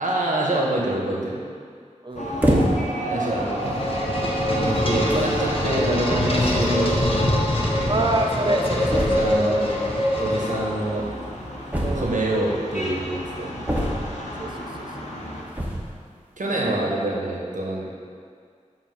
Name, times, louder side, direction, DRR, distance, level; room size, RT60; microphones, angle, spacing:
voice 1, 0.0-1.4 3.0-3.9 4.5-6.9 9.1-9.7 10.2-11.1 12.0-13.6 16.4-17.9, right 1 dB, 85° right, -3 dB, 1.1 m, -26 dB
voice 2, 2.0-2.4 7.9-9.3 11.8-12.3 14.4-15.1 16.5-17.0, right 2 dB, 40° right, 2 dB, 0.6 m, -27 dB
sound 1, 2.1-15.4, equal, 65° left, 1.1 m, -32 dB
sound 2, 2.4-3.0 3.8-3.9 4.7-4.8 5.1-5.4 6.6-6.7 6.9-7.0 7.3-7.4 8.9-9.4 11.7-12.4 13.7-14.3 15.5-16.0, equal, 15° right, 1.1 m, -24 dB
sound 3, 3.2-11.0, left 1 dB, 45° left, 1.0 m, -24 dB
7.5 x 2.9 x 5.8 m, 2.1 s
wide cardioid pair, 65°, 13 cm